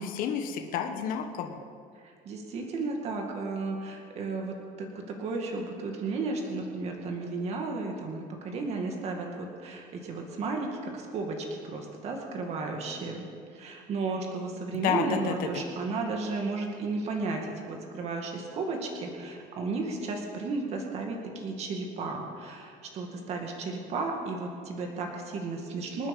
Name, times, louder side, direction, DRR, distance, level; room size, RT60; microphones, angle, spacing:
voice 1, 0.0-1.6 14.7-15.6, left 7 dB, 60° left, 4 dB, 1.2 m, -30 dB
voice 2, 2.2-13.2 13.5-26.1, right 3 dB, 40° right, 1 dB, 2.2 m, -34 dB
27.0 x 9.2 x 5.4 m, 2.2 s
cardioid pair, 180°, 16 cm